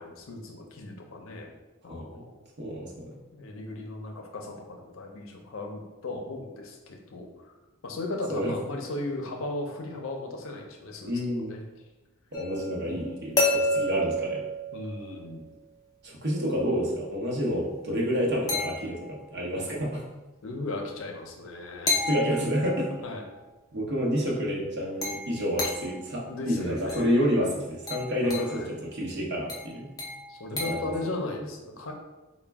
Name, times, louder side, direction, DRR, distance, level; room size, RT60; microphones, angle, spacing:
voice 1, 0.0-1.5 1.8-2.4 3.3-7.5 7.8-11.6 12.9-13.5 14.7-15.5 20.4-21.9 23.0-23.2 26.3-27.4 28.2-28.7 30.3-31.9, left 2 dB, 65° left, 2 dB, 0.5 m, -37 dB
voice 2, 1.9-2.3 2.6-3.2 8.3-8.5 11.0-11.6 12.3-14.4 16.0-20.0 22.1-22.9 23.7-29.9 30.5-31.1, equal, 50° right, -3 dB, 0.8 m, -29 dB
sound 1, 12.3-15.4 18.5-19.3 21.9-23.1 25.0-26.1 26.9-27.2 27.9-28.6 29.5-31.0, left 1 dB, 15° left, 0.5 m, -31 dB
4.1 x 2.1 x 3.4 m, 1.1 s
head